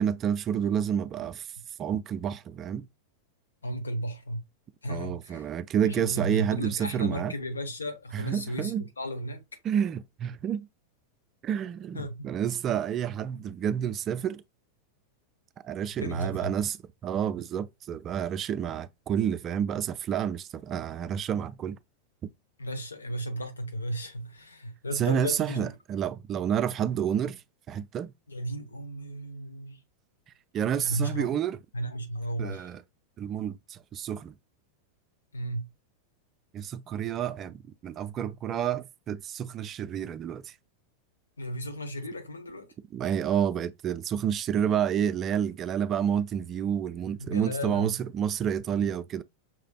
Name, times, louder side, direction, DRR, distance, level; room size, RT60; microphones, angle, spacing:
voice 1, 0.0-1.5 1.8-2.9 4.9-7.3 8.1-8.9 9.6-10.7 11.4-14.4 15.6-16.8 17.0-21.8 24.9-27.4 27.7-28.1 30.5-31.6 32.4-32.8 33.2-34.3 36.5-40.5 42.9-49.2, right 9 dB, 30° right, 0.3 m, -29 dB
voice 2, 3.6-4.4 4.8-5.5 5.8-9.4 11.9-12.3 16.0-16.5 22.6-25.7 28.3-29.8 30.8-31.3 31.7-32.7 35.3-35.7 41.4-42.7 43.0-43.1 47.2-48.0, right 1 dB, 75° left, 0.9 m, -34 dB
5.8 x 3.2 x 2.3 m
figure-of-eight pair, 90°, 0 cm